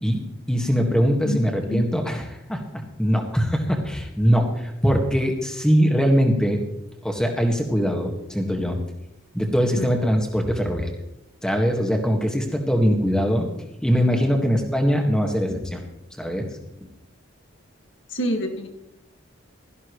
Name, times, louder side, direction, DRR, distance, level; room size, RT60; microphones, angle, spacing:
voice 1, 0.5-6.6 7.0-8.8 9.3-10.9 11.4-13.5 13.8-15.8 16.2-16.6, equal, 5° left, 2 dB, 1.7 m, -22 dB
voice 2, 1.2-1.8 9.8-9.9 18.1-18.7, equal, 65° left, 3 dB, 2.0 m, -27 dB
16.5 x 14.0 x 3.2 m, 0.87 s
head